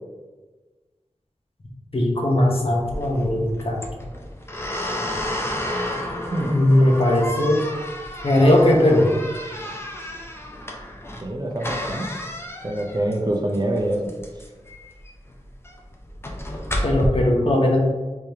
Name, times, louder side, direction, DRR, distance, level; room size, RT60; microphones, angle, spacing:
voice 1, 1.9-3.8 6.4-7.6 8.2-9.1 16.8-17.8, left 1 dB, 50° left, -1 dB, 0.8 m, -18 dB
sound 1, 2.8-17.1, left 1 dB, 20° left, 0.6 m, -32 dB
voice 2, 11.2-12.1 12.6-14.0, right 1 dB, 35° right, 1 dB, 0.5 m, -25 dB
3.4 x 3.3 x 2.8 m, 1.3 s
wide cardioid pair, 65°, 12 cm